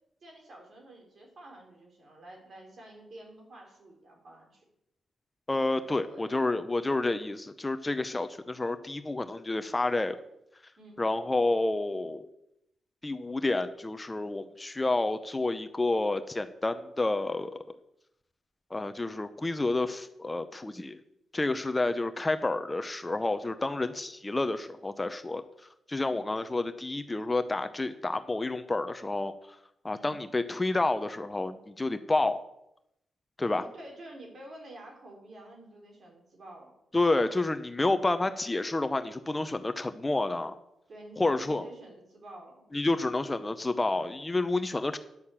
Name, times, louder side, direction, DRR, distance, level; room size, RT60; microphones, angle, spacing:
voice 1, 0.2-4.6 6.1-6.3 10.8-11.0 26.1-26.2 29.9-30.2 33.4-36.7 40.9-42.6, right 1 dB, 55° right, 0 dB, 4.2 m, -49 dB
voice 2, 5.5-10.2 11.0-12.3 13.0-17.6 18.7-21.0 21.3-25.4 25.9-29.3 29.8-32.4 33.4-33.7 36.9-40.6 41.2-41.7 42.7-45.0, left 2 dB, 20° left, 10 dB, 0.7 m, -29 dB
10.5 x 6.5 x 7.2 m, 0.82 s
cardioid pair, 80°, 0 cm